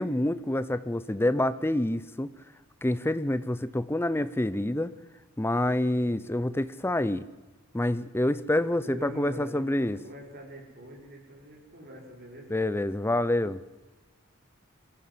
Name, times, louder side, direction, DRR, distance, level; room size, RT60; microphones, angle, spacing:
voice 1, 0.0-2.3 2.8-4.9 5.4-7.3 7.7-10.0 12.5-13.6, left 1 dB, 10° left, 16 dB, 0.6 m, -27 dB
voice 2, 8.8-12.6, right 1 dB, 45° right, 0 dB, 5.5 m, -44 dB
23.0 x 15.0 x 7.7 m, 1.2 s
head